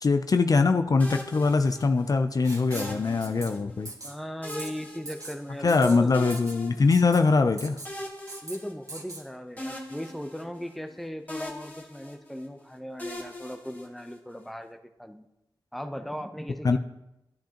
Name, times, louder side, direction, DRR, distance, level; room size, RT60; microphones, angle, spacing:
voice 1, 0.0-3.9 5.6-7.8 16.6-16.8, left 4 dB, 45° left, 7 dB, 0.4 m, -22 dB
sound 1, 1.0-2.2 2.7-3.8 4.4-5.8 6.1-7.3 7.8-9.2 9.6-11.0 11.3-12.5 13.0-14.4, left 1 dB, 20° left, 1.8 m, -41 dB
Writing, 2.4-3.0 3.2-3.5 3.8-4.1 4.5-4.7 5.1-5.4 5.7-6.0 6.3-6.6 6.9-7.2 7.6-7.9 8.3-8.6 8.9-9.2, right 2 dB, 40° right, 1.5 m, -40 dB
voice 2, 4.0-6.1 8.4-15.3 15.7-16.8, equal, ahead, 7 dB, 0.7 m, -38 dB
11.5 x 10.5 x 2.9 m, 0.90 s
wide cardioid pair, 95°, 8 cm